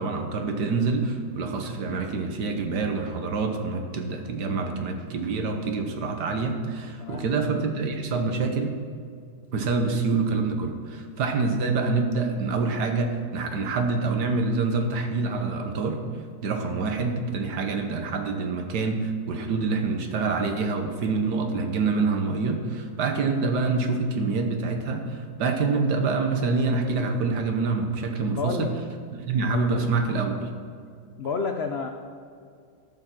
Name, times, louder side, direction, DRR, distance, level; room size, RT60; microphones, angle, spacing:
voice 1, 0.0-8.8 9.5-16.0 16.4-28.7 29.1-30.5, right 4 dB, 70° right, 5 dB, 1.6 m, -26 dB
voice 2, 7.0-7.3 28.4-28.7 31.2-31.9, left 5 dB, 75° left, 4 dB, 0.5 m, -29 dB
14.0 x 5.7 x 6.0 m, 2.3 s
omnidirectional pair, 1.9 m